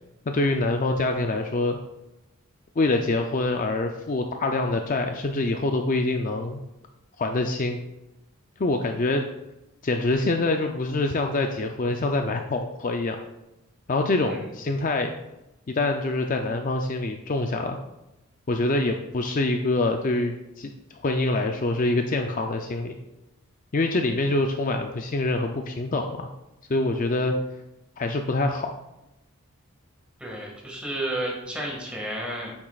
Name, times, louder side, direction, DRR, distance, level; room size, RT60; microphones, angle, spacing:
voice 1, 0.3-1.8 2.8-6.6 7.2-7.8 8.6-9.2 9.8-13.2 13.9-15.1 15.7-17.8 18.5-20.7 21.0-22.9 23.7-26.3 26.7-27.4 28.0-28.7, left 2 dB, 40° left, 4 dB, 0.4 m, -25 dB
voice 2, 30.2-32.5, right 1 dB, 5° right, -2 dB, 1.8 m, -32 dB
9.8 x 7.1 x 2.4 m, 0.95 s
head